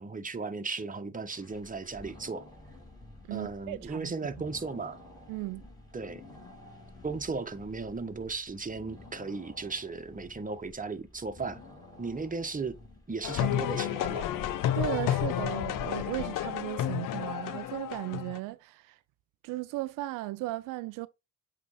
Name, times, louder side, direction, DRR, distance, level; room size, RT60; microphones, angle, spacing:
voice 1, 0.0-2.5 3.3-5.0 5.9-6.2 7.0-11.6 12.0-12.8 13.1-14.3, right 4 dB, 25° right, 1.3 m, -36 dB
sound 1, 1.3-16.7, left 2 dB, 10° left, 4.6 m, -52 dB
voice 2, 3.3-4.1 5.3-5.6 14.7-19.0 19.4-21.1, right 18 dB, 85° right, 0.5 m, -36 dB
sound 2, 13.2-18.4, left 11 dB, 75° left, 0.7 m, -31 dB
8.2 x 3.4 x 4.2 m
supercardioid pair, 50°, 32 cm